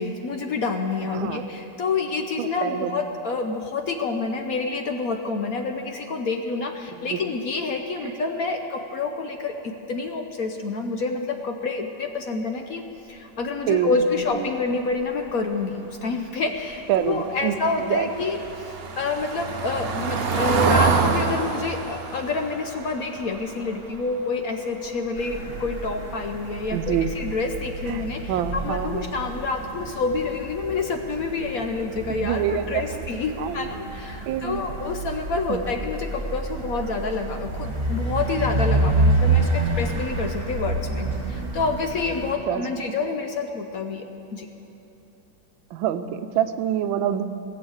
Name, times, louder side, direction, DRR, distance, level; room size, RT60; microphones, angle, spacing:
voice 1, 0.0-12.8 13.1-44.5, left 4 dB, 60° left, 5 dB, 1.0 m, -28 dB
voice 2, 1.1-1.4 2.4-2.9 7.0-7.2 8.0-8.1 13.7-14.5 16.9-18.1 26.7-27.1 27.9-28.0 28.3-29.1 32.1-33.0 33.4-33.7 34.3-34.6 35.5-35.6 42.5-42.6 45.7-47.3, right 10 dB, 90° right, 11 dB, 1.4 m, -26 dB
Car passing by / Engine, 17.3-24.3 24.6-24.9 25.1-25.2, right 5 dB, 50° right, 0.7 m, -26 dB
sound 1, 25.2-42.3, right 2 dB, 30° right, 1.6 m, -28 dB
18.0 x 7.2 x 7.9 m, 2.9 s
omnidirectional pair, 2.1 m